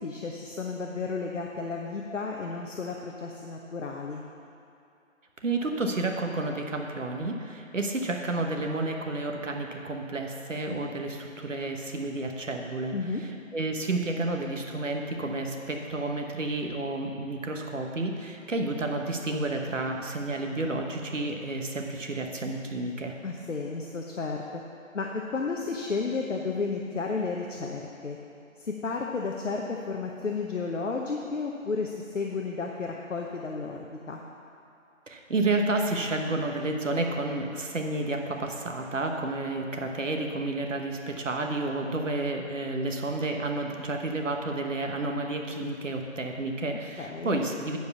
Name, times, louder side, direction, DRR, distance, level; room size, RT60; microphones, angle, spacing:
voice 1, 0.0-4.2 12.9-13.2 23.2-24.4 24.9-28.2 28.6-34.2 47.0-47.4, left 4 dB, 65° left, 0 dB, 0.8 m, -32 dB
voice 2, 5.4-23.1 35.1-47.8, right 2 dB, 65° right, 3 dB, 1.2 m, -31 dB
9.5 x 4.8 x 6.9 m, 2.6 s
figure-of-eight pair, 180°, 40 cm